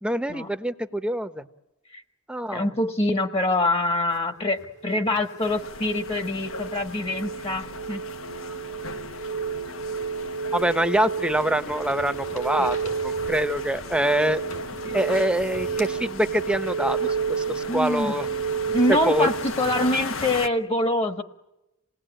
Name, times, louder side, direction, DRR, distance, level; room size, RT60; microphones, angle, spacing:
voice 1, 0.0-1.4 2.3-2.7 10.5-14.4 14.9-17.0 17.3-18.3 18.9-19.3, right 1 dB, 5° right, 9 dB, 1.0 m, -25 dB
voice 2, 2.5-8.0 12.6-12.7 14.5-15.0 17.0-17.1 17.5-18.1 18.6-21.2, left 1 dB, 30° left, 8 dB, 1.5 m, -25 dB
sound 1, 3.9-5.9 7.5-7.6 8.2-10.3 10.7-16.9 17.9-20.3, left 2 dB, 85° left, 7.8 m, -48 dB
sound 2, 4.8-20.0, right 6 dB, 70° right, 1.1 m, -31 dB
sound 3, 5.4-20.5, left 4 dB, 70° left, 1.2 m, -38 dB
28.0 x 19.0 x 9.0 m, 0.94 s
head